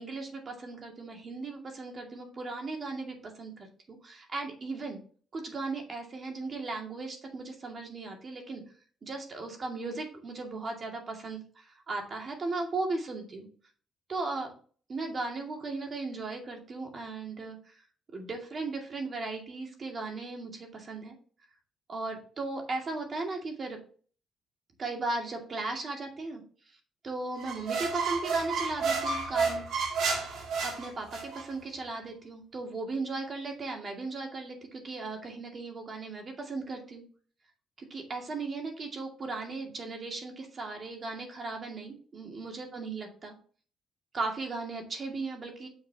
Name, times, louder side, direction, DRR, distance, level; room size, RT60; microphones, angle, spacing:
voice 1, 0.0-5.0 5.3-8.6 9.0-13.5 14.1-14.5 14.9-17.8 18.1-21.1 21.9-23.8 24.8-26.4 27.0-29.7 30.6-37.0 37.8-43.3 44.1-45.7, right 3 dB, 45° right, 2 dB, 2.3 m, -37 dB
sound 1, 27.4-31.5, right 5 dB, 75° right, 2.2 m, -31 dB
7.0 x 6.3 x 2.9 m, 0.42 s
cardioid pair, 90°, 0 cm